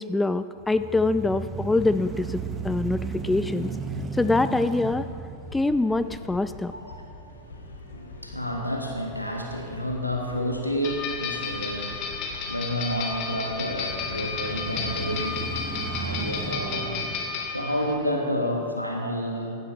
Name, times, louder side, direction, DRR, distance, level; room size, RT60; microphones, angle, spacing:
voice 1, 0.0-3.7 4.1-5.1 5.5-6.7, left 2 dB, 10° left, 12 dB, 0.3 m, -24 dB
sound 1, 0.6-8.7 9.2-9.3 13.8-18.3, right 4 dB, 20° right, 0.9 m, -36 dB
Minotaur (Chase Music), 4.8-17.1, left 3 dB, 65° left, 1.3 m, -45 dB
voice 2, 7.2-19.6, equal, 90° left, 1 dB, 1.5 m, -30 dB
sound 2, 10.8-17.9, left 5 dB, 40° left, 1.6 m, -32 dB
16.0 x 11.0 x 3.1 m, 2.4 s
figure-of-eight pair, 90°, 0 cm